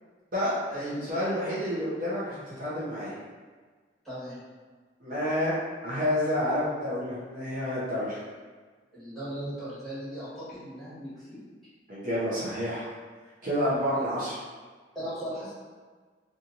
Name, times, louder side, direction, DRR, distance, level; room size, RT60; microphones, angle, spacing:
voice 1, 0.3-3.1 5.0-5.5 5.8-8.2 11.9-12.8 13.4-14.4, equal, 50° right, -9 dB, 0.8 m, -29 dB
voice 2, 4.0-4.4 8.9-11.4 13.9-14.0 14.9-15.5, equal, ahead, -14 dB, 1.4 m, -38 dB
2.8 x 2.5 x 2.5 m, 1.5 s
head